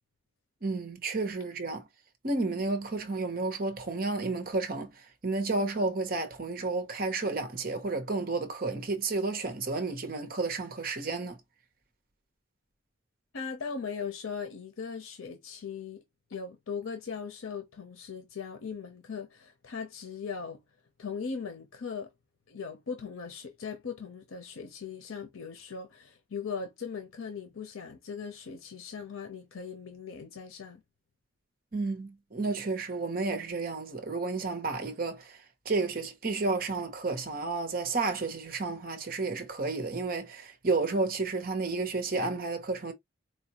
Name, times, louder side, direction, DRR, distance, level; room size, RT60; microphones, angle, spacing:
voice 1, 0.6-1.9 2.2-11.4 31.7-42.9, right 3 dB, 45° right, 0.7 m, -31 dB
voice 2, 13.3-16.0 16.3-20.6 21.0-22.1 22.5-30.8, left 6 dB, 90° left, 0.7 m, -39 dB
4.5 x 2.2 x 2.9 m
head